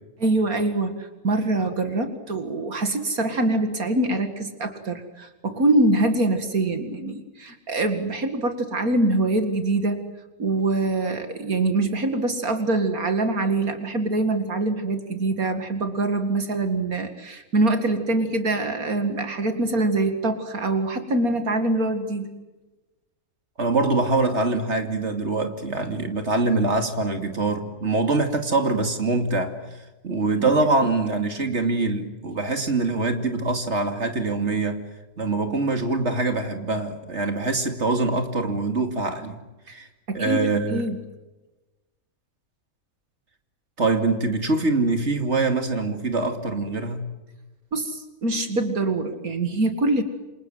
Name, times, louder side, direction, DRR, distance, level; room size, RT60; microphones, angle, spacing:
voice 1, 0.2-10.0 10.4-22.3 30.4-30.5 39.7-41.0 47.7-50.0, right 2 dB, 75° right, 7 dB, 2.6 m, -24 dB
voice 2, 23.6-29.5 30.0-34.8 35.2-39.4 39.7-39.8 40.1-40.8 43.8-47.1, right 3 dB, 50° right, 6 dB, 3.0 m, -24 dB
28.5 x 26.0 x 7.9 m, 1.1 s
omnidirectional pair, 1.5 m